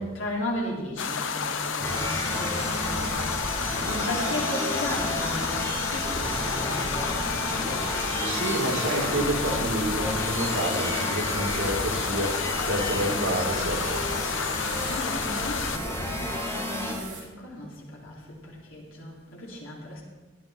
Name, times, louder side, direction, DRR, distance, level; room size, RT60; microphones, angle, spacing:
voice 1, 0.0-7.7 12.6-13.7 14.7-20.0, left 1 dB, 90° left, -3 dB, 3.9 m, -36 dB
sound 1, 1.0-15.8, left 6 dB, 75° left, 0.9 m, -31 dB
sound 2, 1.8-16.9, left 1 dB, 15° left, 2.5 m, -32 dB
voice 2, 1.8-2.5 8.2-14.2, right 1 dB, 85° right, 0 dB, 2.4 m, -29 dB
sound 3, 8.3-17.2, right 5 dB, 40° right, 3.7 m, -41 dB
16.5 x 10.5 x 4.5 m, 1.2 s
head